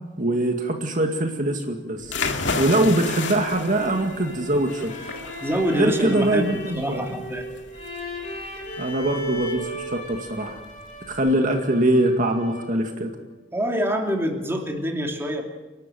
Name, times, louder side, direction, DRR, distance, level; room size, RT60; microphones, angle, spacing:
voice 1, 0.2-2.1 2.6-4.9 5.7-7.2 8.8-10.6 11.1-13.1, right 1 dB, 45° right, 4 dB, 2.1 m, -23 dB
sound 1, 2.0-11.3, left 4 dB, 70° left, 2.4 m, -33 dB
sound 2, 2.1-12.9, equal, 35° left, 7.0 m, -36 dB
voice 2, 5.4-7.4 13.5-15.4, equal, 15° right, 2 dB, 2.9 m, -26 dB
30.0 x 12.5 x 9.2 m, 1.2 s
head